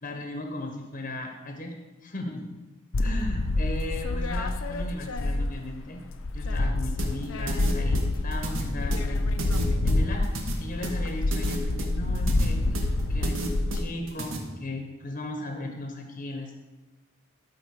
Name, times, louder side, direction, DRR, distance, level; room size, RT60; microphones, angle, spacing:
voice 1, 0.0-1.7 2.0-2.6 3.0-6.0 6.3-9.6 9.8-16.5, left 1 dB, 40° left, 3 dB, 0.8 m, -37 dB
sound 1, 2.9-5.8 6.1-13.8, left 2 dB, 65° left, 0.5 m, -27 dB
sound 2, 7.0-14.4, right 2 dB, 65° right, 1.3 m, -34 dB
12.5 x 4.5 x 4.7 m, 1.2 s
head